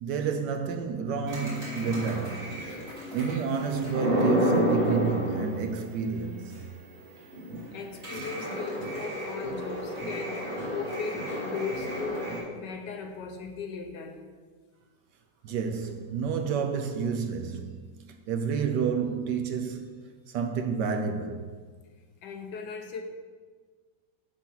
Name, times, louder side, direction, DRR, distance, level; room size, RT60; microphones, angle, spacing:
voice 1, 0.0-2.8 3.1-6.5 8.1-8.2 15.4-21.5, right 6 dB, 70° right, 1.2 m, -30 dB
sound 1, 1.3-6.0 6.5-6.6 6.9-7.0 7.3-12.4, equal, 40° right, 3.7 m, -31 dB
voice 2, 7.7-14.2 22.2-23.0, left 5 dB, 70° left, 1.4 m, -37 dB
7.4 x 7.1 x 5.6 m
omnidirectional pair, 2.1 m